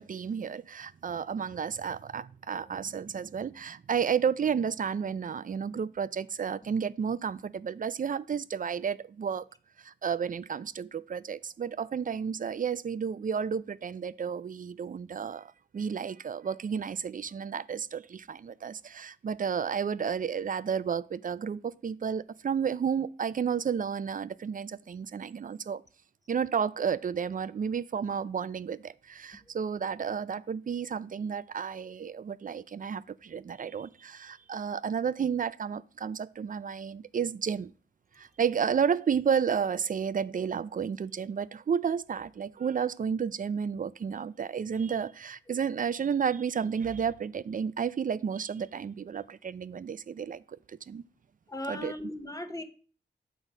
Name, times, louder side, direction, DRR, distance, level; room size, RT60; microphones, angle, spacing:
voice 1, 0.0-9.4 9.8-25.8 26.3-37.7 38.2-51.0 51.7-51.9, right 7 dB, 45° right, 0.4 m, -32 dB
voice 2, 51.5-52.6, left 1 dB, 20° left, 0.9 m, -37 dB
8.1 x 4.0 x 4.9 m
cardioid pair, 65°, 19 cm